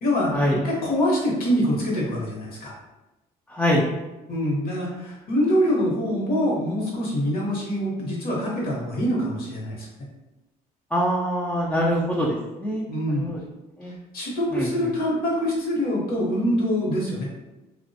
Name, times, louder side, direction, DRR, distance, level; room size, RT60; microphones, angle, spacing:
voice 1, 0.0-2.7 4.3-9.9 12.9-13.3 14.1-17.3, equal, 60° left, -3 dB, 0.9 m, -25 dB
voice 2, 3.5-3.9 10.9-12.8 13.1-13.4 13.8-13.9 14.5-14.9, equal, 5° left, -4 dB, 0.3 m, -24 dB
2.5 x 2.1 x 2.6 m, 1.0 s
cardioid pair, 110°, 17 cm